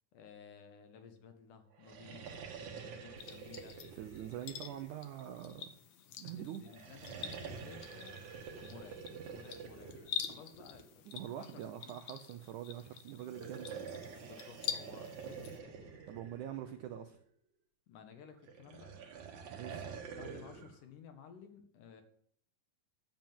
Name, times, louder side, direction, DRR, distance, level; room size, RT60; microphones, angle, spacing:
voice 1, 0.1-2.3 2.6-3.8 4.3-4.6 6.4-8.3 8.6-9.0 9.3-11.0 11.4-12.0 14.2-15.9 17.9-19.0 20.2-22.0, left 7 dB, 70° left, 7 dB, 2.2 m, -55 dB
sound 1, 1.7-5.4 6.7-11.0 13.2-17.2 18.5-20.7, right 6 dB, 60° right, 2.5 m, -47 dB
sound 2, 3.2-15.6, left 8 dB, 85° left, 1.5 m, -47 dB
voice 2, 3.9-5.7 6.2-6.6 11.1-13.7 16.1-17.2 19.5-19.9, right 11 dB, 90° right, 7 dB, 1.7 m, -44 dB
11.0 x 7.1 x 7.5 m, 0.63 s
omnidirectional pair, 4.4 m